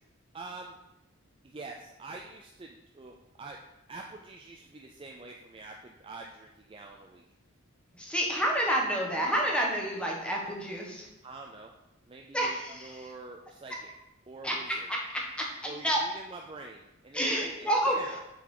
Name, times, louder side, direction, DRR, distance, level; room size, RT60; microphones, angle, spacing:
voice 1, 0.3-0.8 1.4-3.6 3.9-7.2 11.2-11.7 12.1-13.9 14.3-14.9 15.7-18.2, right 3 dB, 25° right, 1 dB, 0.4 m, -45 dB
voice 2, 7.9-11.1 12.3-13.1 14.4-16.0 17.1-18.0, right 1 dB, 5° left, -2 dB, 1.1 m, -29 dB
6.8 x 3.9 x 4.8 m, 0.91 s
head